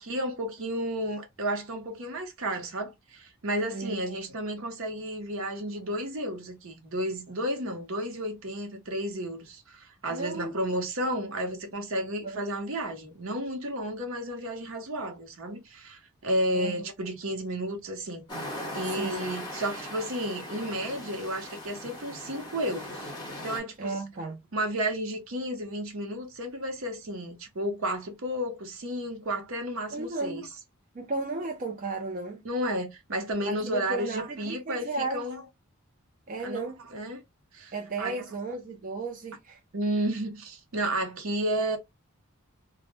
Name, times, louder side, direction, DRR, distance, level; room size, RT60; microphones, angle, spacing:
voice 1, 0.0-18.2 18.7-23.1 23.4-24.0 24.5-30.5 32.4-35.4 36.4-37.2 37.5-38.2 39.7-41.8, right 1 dB, 65° right, 0.7 m, -32 dB
voice 2, 10.1-10.8 12.2-12.4 16.5-16.7 19.0-19.3 23.8-24.4 29.9-30.5 30.9-32.4 33.4-35.2 36.3-36.8 37.7-39.6, right 3 dB, 35° right, 0.4 m, -34 dB
sound 1, 18.3-23.6, left 1 dB, 20° left, 0.9 m, -39 dB
2.1 x 2.1 x 3.0 m
head